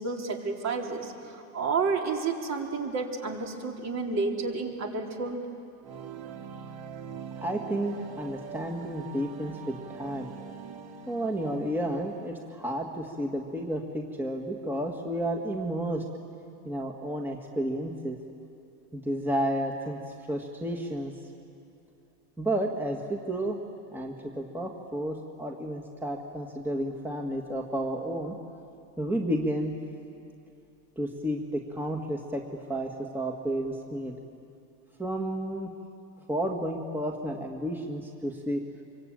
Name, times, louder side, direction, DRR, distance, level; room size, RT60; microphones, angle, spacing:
voice 1, 0.0-5.4, right 4 dB, 40° right, 1 dB, 3.9 m, -30 dB
sound 1, 5.8-12.7, right 7 dB, 70° right, 2.5 m, -43 dB
voice 2, 7.4-10.3 11.1-16.0 16.7-18.2 18.9-20.0 20.3-21.1 22.4-23.6 23.9-28.4 29.0-29.7 31.0-32.4 32.7-34.2 35.0-35.7 36.3-38.6, right 1 dB, 5° right, 1 dB, 1.9 m, -31 dB
25.5 x 23.5 x 9.1 m, 2.6 s
cardioid pair, 125°, 40 cm